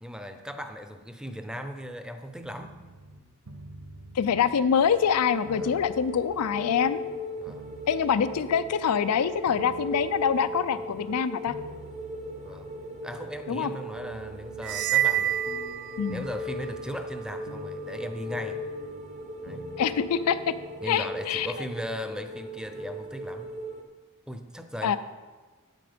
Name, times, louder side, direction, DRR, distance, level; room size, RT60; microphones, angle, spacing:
voice 1, 0.0-2.8 5.5-5.8 7.4-7.7 12.4-12.7 13.0-15.4 16.1-18.7 19.4-19.6 20.8-23.5 24.3-25.0, equal, 5° right, 7 dB, 0.6 m, -38 dB
sound 1, 2.4-20.9, right 1 dB, 70° right, 0.9 m, -48 dB
voice 2, 4.2-7.0 7.9-11.5 13.5-13.7 16.0-16.3 19.8-20.4 20.9-21.5 24.8-25.0, left 7 dB, 90° left, 14 dB, 0.4 m, -25 dB
sound 2, 4.9-23.8, equal, 30° right, 0.9 m, -38 dB
sound 3, 14.6-16.5, right 12 dB, 50° right, 0.4 m, -27 dB
9.1 x 8.7 x 5.1 m, 1.4 s
head